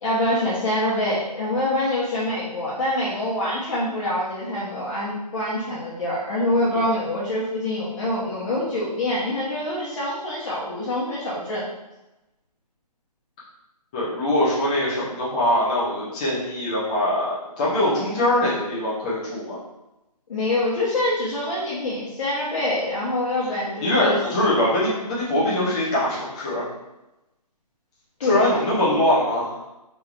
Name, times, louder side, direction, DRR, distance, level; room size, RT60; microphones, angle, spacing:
voice 1, 0.0-11.7 20.3-24.2 28.2-28.4, left 1 dB, 50° left, -7 dB, 0.8 m, -25 dB
voice 2, 13.9-19.6 23.8-26.7 28.2-29.5, left 1 dB, 10° left, -9 dB, 0.4 m, -22 dB
3.3 x 3.0 x 2.4 m, 0.98 s
hypercardioid pair, 155°, 21 cm